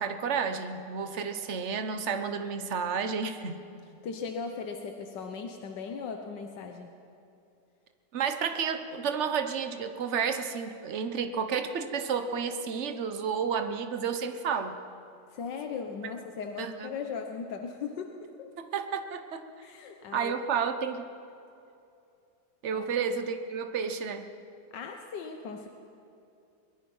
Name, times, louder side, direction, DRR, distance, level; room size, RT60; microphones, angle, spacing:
voice 1, 0.0-3.6 8.1-14.8 16.6-16.9 18.6-19.5 20.1-21.1 22.6-24.3, right 6 dB, 45° right, 8 dB, 1.2 m, -31 dB
voice 2, 4.0-6.9 15.3-18.5 19.6-20.4 22.7-22.9 24.7-25.7, left 5 dB, 90° left, 4 dB, 1.7 m, -38 dB
22.5 x 21.0 x 5.6 m, 2.6 s
omnidirectional pair, 1.9 m